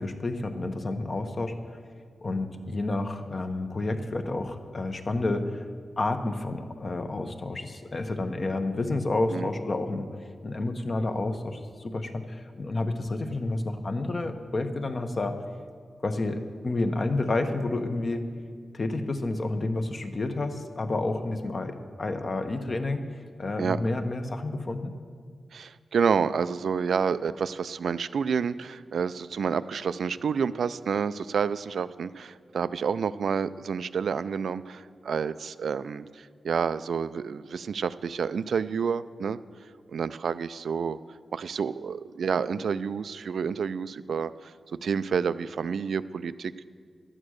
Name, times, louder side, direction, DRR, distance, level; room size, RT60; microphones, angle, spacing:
voice 1, 0.0-1.5 2.2-5.7 6.0-10.1 10.4-15.4 16.0-18.2 18.7-23.1 23.4-25.0, left 2 dB, 45° left, 6 dB, 1.0 m, -30 dB
voice 2, 25.5-39.4 39.9-41.0 41.3-44.5 44.8-46.5, right 6 dB, 80° right, 14 dB, 0.3 m, -29 dB
12.5 x 8.8 x 6.4 m, 2.1 s
wide cardioid pair, 90°, 0 cm